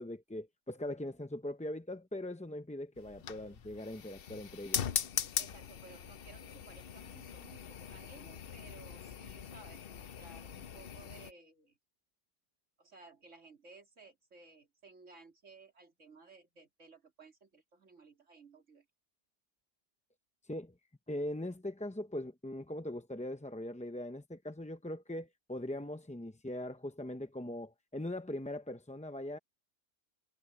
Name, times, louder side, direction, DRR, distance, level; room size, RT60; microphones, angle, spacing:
voice 1, 0.0-4.8 20.4-20.8 21.1-29.4, left 1 dB, 10° left, 0.5 m, -41 dB
sound 1, 3.0-11.3, left 8 dB, 55° left, 0.9 m, -41 dB
voice 2, 5.4-11.8 12.8-18.9, right 4 dB, 80° right, 3.5 m, -57 dB
omnidirectional pair, 1.3 m